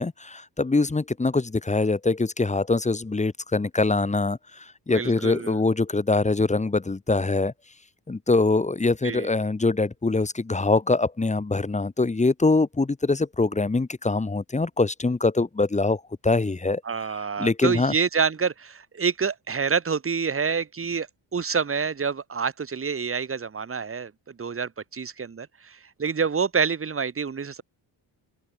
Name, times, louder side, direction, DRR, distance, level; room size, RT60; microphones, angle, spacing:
voice 1, 0.0-7.5 8.1-16.8 17.4-17.9, left 3 dB, 15° left, 1.2 m, -23 dB
voice 2, 4.9-5.6 9.0-9.3 16.9-27.6, right 5 dB, 30° right, 1.7 m, -27 dB
cardioid pair, 85°, 42 cm